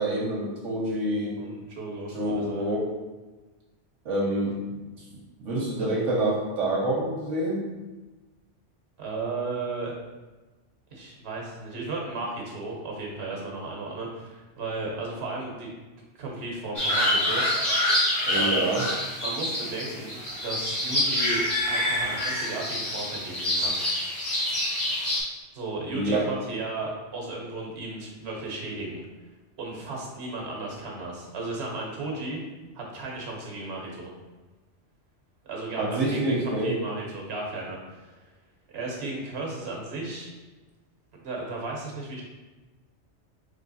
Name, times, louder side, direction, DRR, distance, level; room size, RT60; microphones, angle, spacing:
voice 1, 0.0-1.3 2.1-2.8 4.0-4.9 5.4-7.7 18.3-18.8 25.9-26.2 35.8-36.7, right 1 dB, 80° right, -5 dB, 1.1 m, -27 dB
voice 2, 1.4-2.7 5.8-6.1 9.0-9.9 10.9-15.7 16.2-17.4 18.3-18.8 19.2-23.8 25.5-29.0 29.6-32.4 32.7-34.1 35.5-38.3 38.7-40.3 41.2-42.2, right 2 dB, 60° right, -2 dB, 1.2 m, -35 dB
sound 1, 16.8-25.2, left 1 dB, 30° left, 1.4 m, -26 dB
3.4 x 3.3 x 4.0 m, 1.2 s
omnidirectional pair, 1.2 m